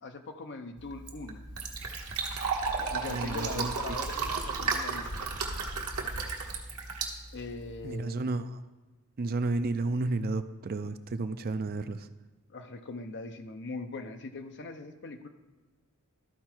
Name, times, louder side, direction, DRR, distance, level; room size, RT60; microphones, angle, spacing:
voice 1, 0.0-1.4 2.9-5.1 7.3-8.2 12.5-15.3, left 3 dB, 50° left, 7 dB, 0.7 m, -41 dB
Fill (with liquid), 0.8-7.9, right 4 dB, 85° right, 1.3 m, -34 dB
voice 2, 3.1-3.7 7.8-8.6 9.2-12.1, right 3 dB, 40° right, 10 dB, 0.4 m, -32 dB
13.0 x 4.6 x 4.4 m, 1.2 s
head